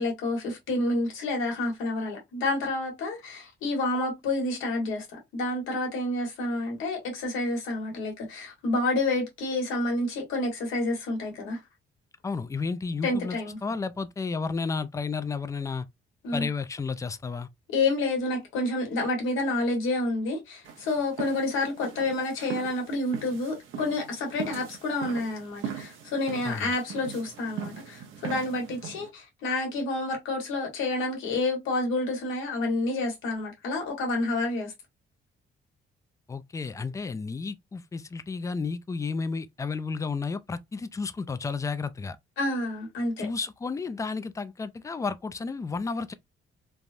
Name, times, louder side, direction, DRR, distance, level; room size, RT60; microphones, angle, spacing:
voice 1, 0.0-5.1 5.3-11.6 13.0-13.6 16.2-16.5 17.7-34.7 42.4-43.3, left 2 dB, 90° left, 1.3 m, -29 dB
voice 2, 12.2-13.4 13.6-15.9 16.3-17.5 26.5-26.7 36.3-42.2 43.2-46.1, left 4 dB, 15° left, 0.3 m, -32 dB
sound 1, 20.6-29.1, right 7 dB, 85° right, 0.7 m, -40 dB
3.2 x 2.2 x 2.5 m
cardioid pair, 90°, 20 cm